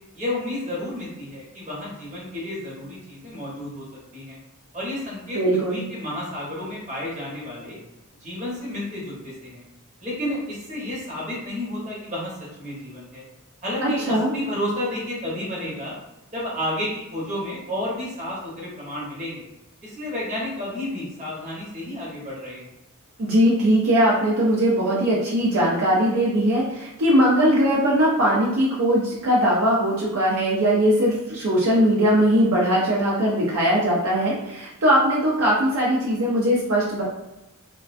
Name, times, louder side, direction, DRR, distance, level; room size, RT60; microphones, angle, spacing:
voice 1, 0.1-3.9 4.1-4.4 4.7-5.4 5.7-7.8 8.2-9.6 10.0-13.2 13.6-16.0 16.3-19.4 19.8-22.7, left 1 dB, 35° right, -5 dB, 0.9 m, -31 dB
voice 2, 5.3-5.8 13.8-14.3 23.2-37.0, equal, 65° right, -5 dB, 0.5 m, -20 dB
2.3 x 2.2 x 2.4 m, 0.97 s
head